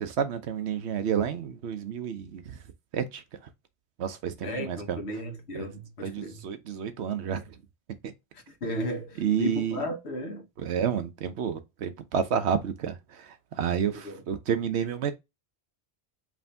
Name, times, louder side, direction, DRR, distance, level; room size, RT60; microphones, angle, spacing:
voice 1, 0.0-2.6 2.9-3.2 4.0-5.0 5.5-5.7 6.0-7.6 8.0-8.1 9.2-9.8 10.6-15.1, right 8 dB, 85° right, 1.0 m, -30 dB
voice 2, 4.4-6.5 8.3-10.5 14.0-14.2, equal, 85° left, 1.3 m, -34 dB
4.9 x 2.7 x 3.3 m
omnidirectional pair, 1.1 m